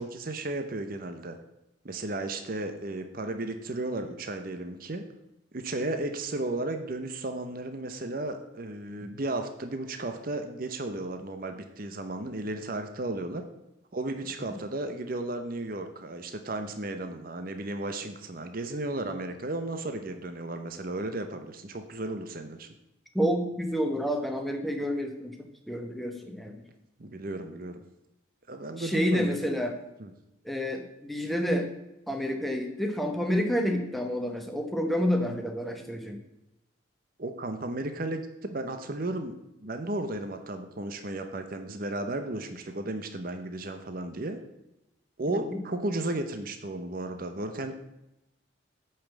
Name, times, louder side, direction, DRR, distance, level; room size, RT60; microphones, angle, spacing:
voice 1, 0.0-1.4 1.8-5.0 5.5-13.4 13.9-22.7 27.0-27.8 28.5-29.3 30.0-30.1 37.2-44.4 45.2-47.7, right 2 dB, 45° right, 7 dB, 0.8 m, -34 dB
voice 2, 23.1-25.4 25.7-26.6 28.8-29.7 30.4-31.7 32.1-36.2 45.3-45.5, equal, ahead, 3 dB, 1.0 m, -29 dB
8.5 x 5.6 x 7.2 m, 0.92 s
head